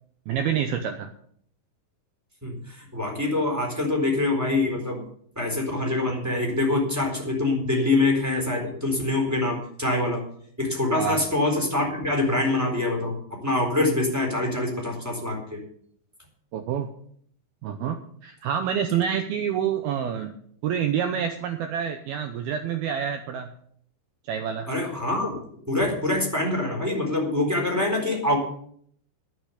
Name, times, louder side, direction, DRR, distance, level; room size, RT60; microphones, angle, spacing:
voice 1, 0.3-1.1 10.9-11.2 16.5-16.9 17.6-20.3 20.6-23.5 24.2-24.7, right 8 dB, 75° right, 7 dB, 2.3 m, -27 dB
voice 2, 2.4-5.0 5.3-10.2 10.6-15.6 24.7-25.4 25.7-28.4, left 2 dB, 5° right, 1 dB, 3.4 m, -25 dB
10.5 x 9.0 x 8.4 m, 0.63 s
omnidirectional pair, 5.3 m